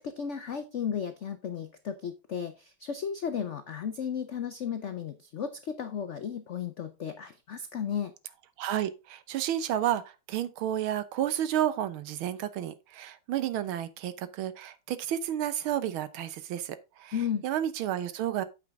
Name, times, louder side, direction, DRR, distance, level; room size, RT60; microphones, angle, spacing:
voice 1, 0.0-8.1 17.1-17.4, left 7 dB, 80° left, 0.6 m, -34 dB
voice 2, 8.6-17.2 17.4-18.4, right 11 dB, 85° right, 1.7 m, -31 dB
8.7 x 6.5 x 3.6 m
omnidirectional pair, 2.2 m